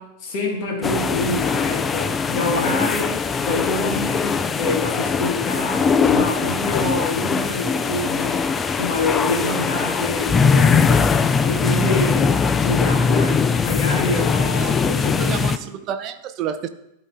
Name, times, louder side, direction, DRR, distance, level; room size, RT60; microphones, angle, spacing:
voice 1, 0.0-15.5, left 2 dB, 40° left, 0 dB, 1.8 m, -26 dB
sound 1, 0.8-15.6, left 5 dB, 20° left, 0.4 m, -21 dB
voice 2, 15.2-16.7, right 8 dB, 35° right, 11 dB, 0.6 m, -29 dB
11.5 x 4.0 x 3.7 m, 0.84 s
figure-of-eight pair, 90°, 0 cm